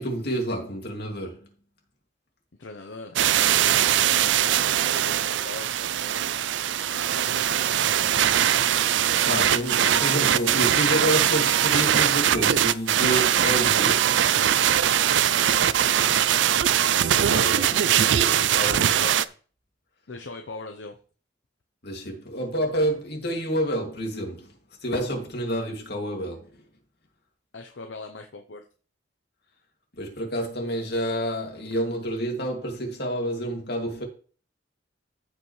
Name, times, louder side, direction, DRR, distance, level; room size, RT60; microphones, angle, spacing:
voice 1, 0.0-1.5 9.3-14.1 17.1-19.0 21.8-24.5 24.8-26.6 30.0-34.0, equal, 60° left, 2.5 m, -29 dB
voice 2, 2.6-6.2 7.1-8.6 9.8-10.6 15.0-15.7 18.4-19.2 20.1-20.9 27.5-28.6, left 3 dB, 75° left, 0.8 m, -41 dB
sound 1, 3.2-19.3, right 10 dB, 75° right, 0.4 m, -21 dB
14.5 x 5.4 x 3.3 m
head